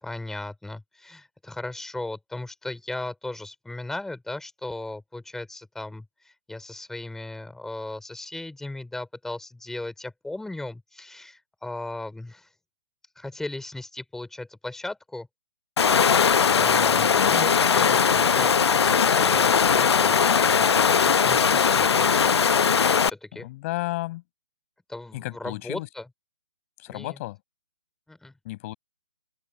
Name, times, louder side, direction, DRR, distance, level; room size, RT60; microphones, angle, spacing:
voice 1, 0.0-12.5 13.2-15.3 16.5-22.1 22.9-23.5 24.9-26.1 26.9-27.2 28.1-28.3, left 2 dB, 5° left, 4.9 m, -37 dB
Water, 15.8-23.1, left 6 dB, 70° left, 1.0 m, -20 dB
voice 2, 17.0-17.4 23.3-24.2 25.1-25.9 26.8-27.4 28.4-28.7, left 19 dB, 30° left, 5.4 m, -33 dB
open air
hypercardioid pair, 150°, 14 cm